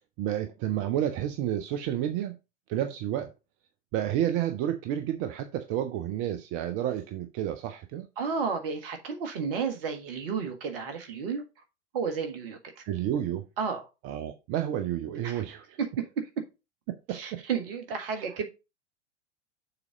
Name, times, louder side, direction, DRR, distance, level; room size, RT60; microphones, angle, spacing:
voice 1, 0.2-2.4 2.7-3.3 3.9-8.1 12.8-13.5 14.0-15.8 17.1-17.4 18.1-18.2, right 11 dB, 35° right, 0.6 m, -30 dB
voice 2, 8.2-11.4 11.9-12.8 13.6-13.8 15.2-15.4 15.8-16.3 17.1-18.5, right 6 dB, 50° right, 1.7 m, -32 dB
6.8 x 4.1 x 4.9 m
figure-of-eight pair, 90°, 35 cm